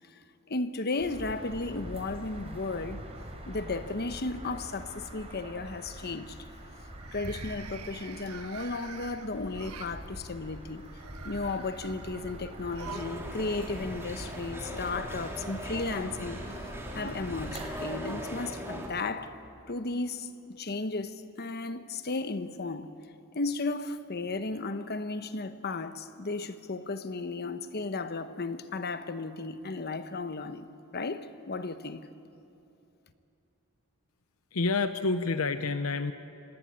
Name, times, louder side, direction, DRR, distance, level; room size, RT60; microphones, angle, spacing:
voice 1, 0.5-3.1 3.5-6.4 7.1-10.8 11.2-16.4 16.9-19.3 19.7-22.9 23.3-30.7 30.9-32.1, left 3 dB, 45° left, 1.0 m, -34 dB
sound 1, 1.0-17.7, equal, 30° right, 3.5 m, -44 dB
sound 2, 6.9-10.0 10.8-13.2 13.5-13.6 14.7-14.8, right 7 dB, 90° right, 1.5 m, -47 dB
sound 3, 12.8-18.9, equal, 10° right, 3.0 m, -39 dB
voice 2, 34.5-36.1, left 3 dB, 75° left, 0.8 m, -28 dB
25.5 x 19.0 x 8.9 m
head